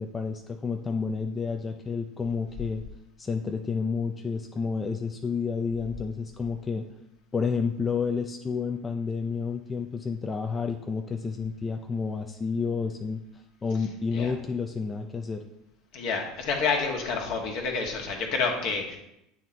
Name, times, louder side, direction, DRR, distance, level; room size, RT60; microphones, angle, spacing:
voice 1, 0.0-2.8 3.2-6.9 7.3-13.2 13.6-15.4, left 5 dB, 25° left, 4 dB, 0.5 m, -30 dB
voice 2, 15.9-19.0, left 4 dB, 60° left, 2 dB, 1.3 m, -28 dB
8.4 x 3.2 x 4.1 m, 0.83 s
hypercardioid pair, 75°, 0 cm